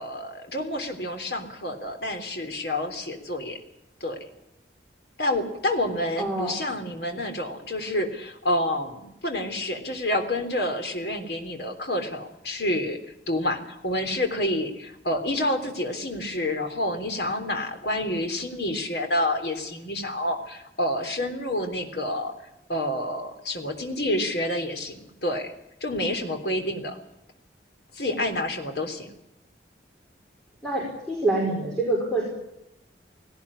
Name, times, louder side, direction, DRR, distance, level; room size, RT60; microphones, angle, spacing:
voice 1, 0.0-3.6 4.0-4.2 5.2-13.0 13.3-22.3 22.7-25.5 25.8-27.0 27.9-29.1, left 1 dB, 65° left, 5 dB, 3.5 m, -28 dB
voice 2, 6.2-6.5 30.6-32.2, right 2 dB, 5° left, -3 dB, 5.0 m, -26 dB
18.0 x 18.0 x 9.9 m, 0.87 s
head